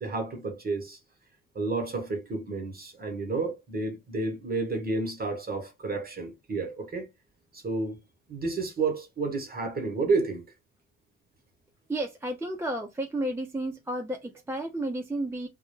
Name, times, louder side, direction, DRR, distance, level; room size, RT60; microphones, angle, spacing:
voice 1, 0.0-1.0 1.5-7.1 7.5-8.0 8.3-10.4, right 3 dB, 30° right, 1.0 m, -30 dB
voice 2, 11.9-15.5, right 1 dB, 10° right, 0.4 m, -32 dB
2.1 x 2.1 x 3.0 m
cardioid pair, 90°, 30 cm